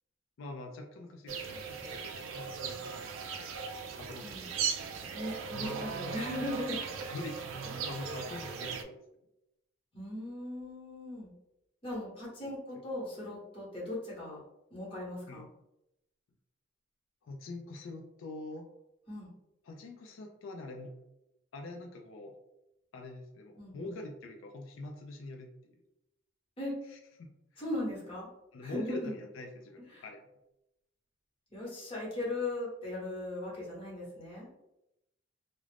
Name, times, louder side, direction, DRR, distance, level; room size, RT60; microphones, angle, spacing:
voice 1, 0.4-3.1 4.0-4.6 5.6-6.0 7.0-9.0 12.4-12.6 15.3-15.4 17.2-18.7 19.6-21.0 21.5-22.4 22.9-25.8 26.9-27.6 28.5-30.2, left 2 dB, 85° left, 3 dB, 0.4 m, -45 dB
sound 1, 1.3-8.8, right 6 dB, 85° right, 0.3 m, -38 dB
voice 2, 5.1-6.8 7.7-7.9 9.9-11.3 11.8-14.4 14.7-15.4 19.1-19.3 23.6-23.9 26.6-26.8 27.6-28.3 28.6-29.1 29.9-30.0 31.5-34.5, left 1 dB, 30° left, -6 dB, 1.0 m, -38 dB
2.4 x 2.0 x 3.2 m, 0.88 s
head